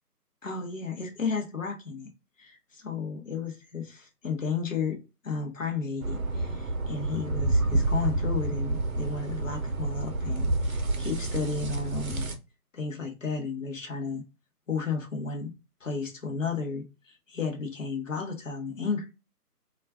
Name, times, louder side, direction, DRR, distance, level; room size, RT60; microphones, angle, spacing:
voice 1, 0.4-2.1 2.4-12.3 12.7-14.2 14.7-15.5 15.8-19.1, left 5 dB, 55° left, 0.9 m, -33 dB
sound 1, 6.0-12.4, right 2 dB, 60° right, 0.7 m, -29 dB
2.4 x 2.4 x 3.3 m
figure-of-eight pair, 155°, 47 cm